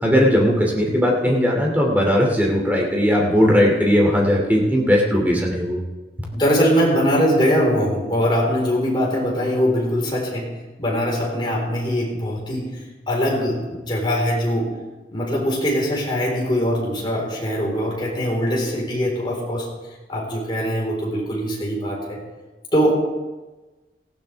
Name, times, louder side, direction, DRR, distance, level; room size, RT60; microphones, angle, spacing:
voice 1, 0.0-5.8, equal, 10° right, -1 dB, 2.7 m, -18 dB
voice 2, 6.3-14.7 15.1-19.7 20.1-22.2 22.7-22.9, equal, 25° left, -3 dB, 4.3 m, -22 dB
18.5 x 15.0 x 3.5 m, 1.2 s
head